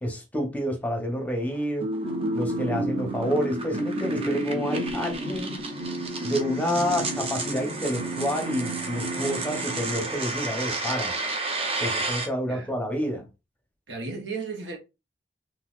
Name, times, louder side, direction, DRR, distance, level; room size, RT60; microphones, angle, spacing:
voice 1, 0.0-1.9 2.3-5.6 6.2-11.1 11.8-13.3, equal, 10° left, 0.8 m, -29 dB
sound 1, 1.5-12.3, right 3 dB, 35° right, 0.7 m, -33 dB
sound 2, 1.8-10.6, right 1 dB, 60° right, 2.0 m, -32 dB
voice 2, 13.9-14.8, right 4 dB, 85° right, 1.0 m, -34 dB
3.9 x 2.5 x 2.4 m
head